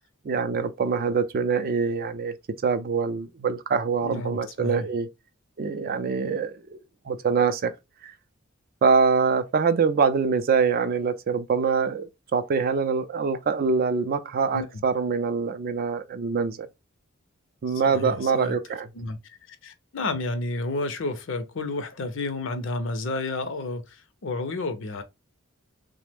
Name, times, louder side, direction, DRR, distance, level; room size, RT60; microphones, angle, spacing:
voice 1, 0.3-2.3 2.6-5.1 5.6-6.8 7.1-7.7 8.0-8.1 8.8-16.7 17.6-18.9, right 5 dB, 45° right, 0.4 m, -24 dB
voice 2, 4.0-4.9 14.5-14.8 17.7-18.6 18.9-25.0, left 2 dB, 60° left, 0.5 m, -31 dB
3.2 x 2.0 x 3.3 m
head